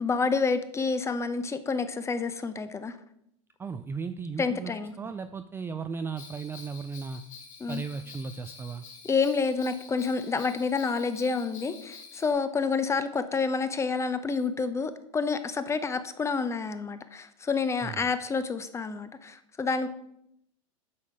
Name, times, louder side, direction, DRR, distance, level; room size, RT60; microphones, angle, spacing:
voice 1, 0.0-3.0 4.4-4.9 7.6-7.8 9.1-19.9, left 4 dB, 15° left, 12 dB, 0.7 m, -28 dB
voice 2, 3.6-4.7 5.0-7.2 7.7-8.8 17.8-18.1, right 5 dB, 15° right, 9 dB, 0.3 m, -36 dB
Bell, 6.2-12.3, left 5 dB, 70° left, 2.1 m, -48 dB
8.3 x 5.7 x 4.9 m, 0.76 s
hypercardioid pair, 105°, 17 cm